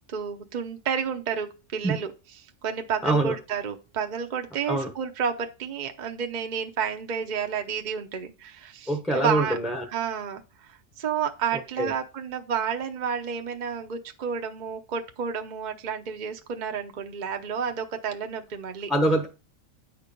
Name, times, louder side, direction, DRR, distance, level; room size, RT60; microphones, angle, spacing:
voice 1, 0.1-2.1 2.6-9.6 9.9-18.9, right 7 dB, 40° right, 0.8 m, -31 dB
voice 2, 3.0-3.3 4.7-4.9 8.9-9.8 11.8-11.9 18.9-19.3, right 1 dB, ahead, 0.9 m, -24 dB
9.3 x 4.5 x 5.2 m
omnidirectional pair, 1.3 m